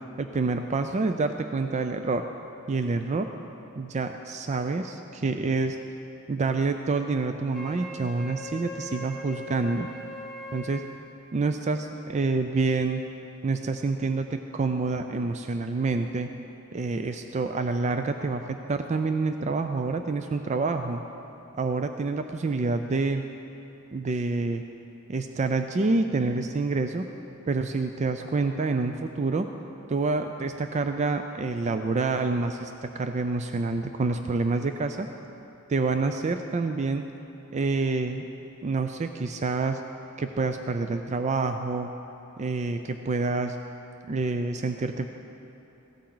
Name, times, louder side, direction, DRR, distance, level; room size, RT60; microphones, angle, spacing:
voice 1, 0.2-2.2 2.7-3.3 3.8-5.8 6.3-9.9 10.5-10.8 11.3-13.0 13.4-16.3 16.7-21.0 21.6-23.2 23.9-24.6 25.1-27.1 27.5-29.5 29.9-35.1 35.7-37.1 37.5-38.2 38.6-39.8 40.2-41.9 42.4-43.6 44.1-45.1, right 3 dB, 35° right, 7 dB, 0.4 m, -27 dB
Wind instrument woodwind instrument, 7.5-10.9, left 1 dB, ahead, 2.2 m, -40 dB
16.0 x 13.0 x 3.9 m, 2.9 s
head